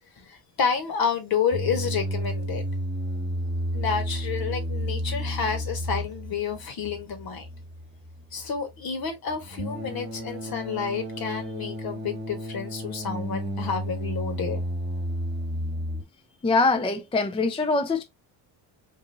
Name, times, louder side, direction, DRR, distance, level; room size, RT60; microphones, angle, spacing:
voice 1, 0.2-2.6 3.7-7.5 8.3-14.6, left 6 dB, 55° left, 1.5 m, -30 dB
sound 1, 1.5-16.0, equal, 25° right, 1.2 m, -32 dB
voice 2, 16.4-18.0, left 3 dB, 15° left, 0.4 m, -23 dB
3.9 x 2.6 x 2.7 m
supercardioid pair, 80°, 43 cm